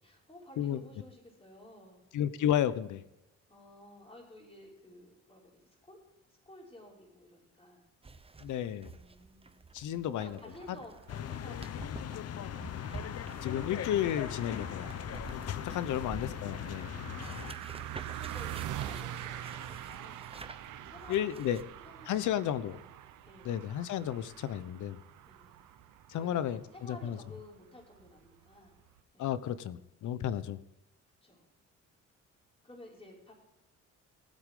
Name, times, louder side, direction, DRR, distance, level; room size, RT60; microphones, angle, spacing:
voice 1, 0.0-2.0 3.5-6.0 6.5-7.8 8.9-9.6 10.0-12.5 17.1-17.7 18.1-20.3 20.7-22.2 22.6-22.8 23.2-23.6 25.3-25.6 26.1-28.7 29.1-29.3 30.0-30.2 31.2-31.5 32.6-33.3, left 1 dB, 20° left, -2 dB, 5.6 m, -53 dB
voice 2, 2.1-3.0 8.4-8.9 9.7-10.3 13.4-14.9 15.3-15.4 15.7-17.0 21.1-21.6 22.1-22.8 23.4-25.0 26.1-26.6 26.9-27.2 29.2-30.6, left 10 dB, 75° left, 15 dB, 0.9 m, -32 dB
sound 1, 8.0-21.6, right 4 dB, 20° right, 0.9 m, -50 dB
sound 2, 10.4-29.0, right 11 dB, 85° right, 1.0 m, -45 dB
sound 3, 11.1-17.5, left 10 dB, 55° left, 0.7 m, -39 dB
18.5 x 8.5 x 3.8 m, 0.96 s
cardioid pair, 90°, 30 cm